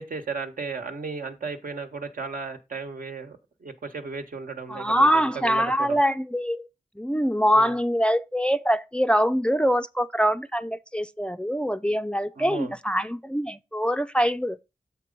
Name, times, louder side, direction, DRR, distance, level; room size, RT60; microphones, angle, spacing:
voice 1, 0.0-5.1 5.4-6.0 7.5-7.7 12.4-12.7, right 4 dB, 75° right, 1.2 m, -35 dB
voice 2, 4.7-6.7 7.0-14.6, equal, 5° left, 0.4 m, -24 dB
7.3 x 4.5 x 5.2 m
wide cardioid pair, 80°, 14 cm